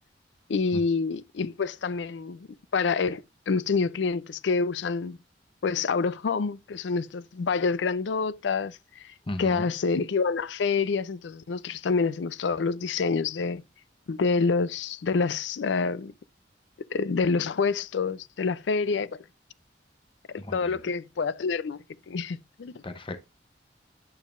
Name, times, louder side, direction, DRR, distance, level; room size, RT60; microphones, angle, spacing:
voice 1, 0.5-2.5 2.7-5.2 5.6-9.0 9.4-13.6 14.1-16.1 16.9-19.1 20.3-21.8 22.1-22.8, left 4 dB, 75° left, 0.4 m, -27 dB
voice 2, 9.3-9.7 20.4-20.8 22.8-23.2, left 1 dB, 30° left, 0.7 m, -35 dB
8.7 x 7.2 x 2.5 m
head